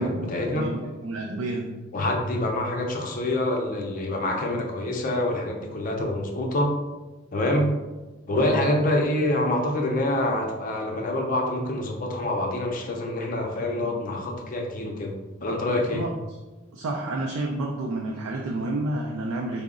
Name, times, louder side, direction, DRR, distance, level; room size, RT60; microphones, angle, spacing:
voice 1, 0.0-0.7 1.9-6.7 7.3-7.8 8.3-16.1, left 1 dB, 40° left, 1 dB, 0.5 m, -26 dB
voice 2, 0.5-1.6 8.4-8.7 13.8-14.0 15.9-16.1 16.7-19.6, right 2 dB, 80° right, 0 dB, 0.4 m, -30 dB
3.7 x 2.0 x 3.6 m, 1.2 s
head